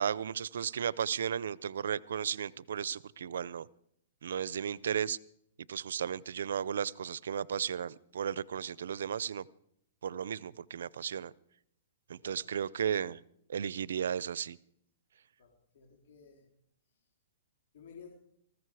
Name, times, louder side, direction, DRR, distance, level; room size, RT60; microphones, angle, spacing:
voice 1, 0.0-3.7 4.2-5.2 5.7-9.4 10.0-11.3 12.1-13.2 13.5-14.6, right 8 dB, 80° right, 22 dB, 0.5 m, -34 dB
voice 2, 15.4-16.5 16.9-17.1 17.7-18.2, left 6 dB, 60° left, -1 dB, 3.4 m, -55 dB
19.5 x 15.0 x 4.8 m, 0.72 s
hypercardioid pair, 155°, 0 cm